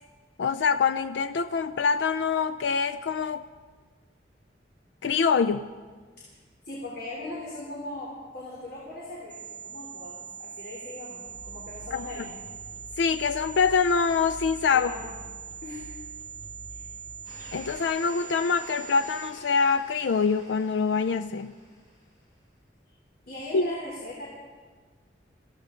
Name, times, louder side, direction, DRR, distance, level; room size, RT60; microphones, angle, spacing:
voice 1, 0.4-3.5 5.0-5.7 11.9-12.0 13.0-14.9 17.5-21.5 23.5-23.7, left 5 dB, 85° left, 11 dB, 0.4 m, -25 dB
voice 2, 6.6-12.4 14.7-15.0 15.6-15.9 16.7-16.8 23.3-24.3, left 2 dB, 60° left, -5 dB, 3.2 m, -39 dB
sound 1, 9.3-19.3, right 7 dB, 10° right, 5.7 m, -42 dB
sound 2, 11.3-17.8, equal, 40° left, 4.3 m, -47 dB
sound 3, 17.2-22.2, equal, 25° left, 5.6 m, -50 dB
22.5 x 15.0 x 3.8 m, 1.5 s
head